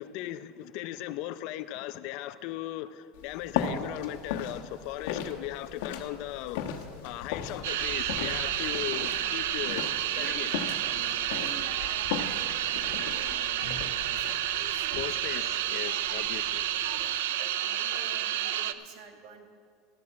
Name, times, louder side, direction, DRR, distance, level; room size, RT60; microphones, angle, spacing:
voice 1, 0.0-6.6 7.0-9.8 10.1-10.5 14.9-16.7, left 14 dB, 60° left, 0.5 m, -38 dB
sound 1, 3.1-17.2, left 7 dB, 80° left, 1.2 m, -38 dB
sound 2, 7.6-18.7, right 12 dB, 90° right, 0.5 m, -30 dB
voice 2, 10.1-14.9 15.7-15.9 16.9-19.5, right 5 dB, 60° right, 1.6 m, -49 dB
14.0 x 8.5 x 6.3 m
supercardioid pair, 135°, 0 cm